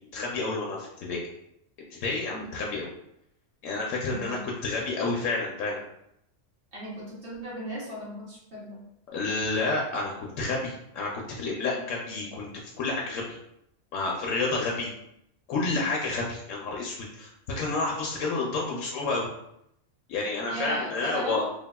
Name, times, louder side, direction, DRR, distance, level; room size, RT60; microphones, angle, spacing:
voice 1, 0.1-1.2 1.9-2.9 3.6-5.8 9.1-12.5 12.8-13.4 13.9-14.9 15.5-19.3 20.1-21.4, left 3 dB, 80° left, -2 dB, 0.9 m, -30 dB
voice 2, 2.3-2.6 4.0-4.4 6.7-8.8 20.5-21.5, right 1 dB, 50° right, -6 dB, 1.1 m, -37 dB
3.4 x 2.3 x 2.2 m, 0.77 s
omnidirectional pair, 1.3 m